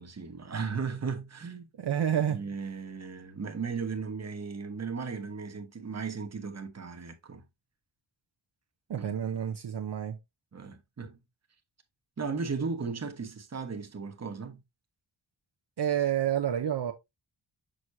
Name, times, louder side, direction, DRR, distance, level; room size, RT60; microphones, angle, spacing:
voice 1, 0.0-1.7 2.3-7.4 9.0-9.1 10.5-11.2 12.2-14.6, right 5 dB, 35° right, 1.1 m, -36 dB
voice 2, 1.8-2.4 8.9-10.2 15.8-16.9, right 9 dB, 55° right, 0.7 m, -29 dB
6.4 x 6.1 x 2.6 m
wide cardioid pair, 140°, 47 cm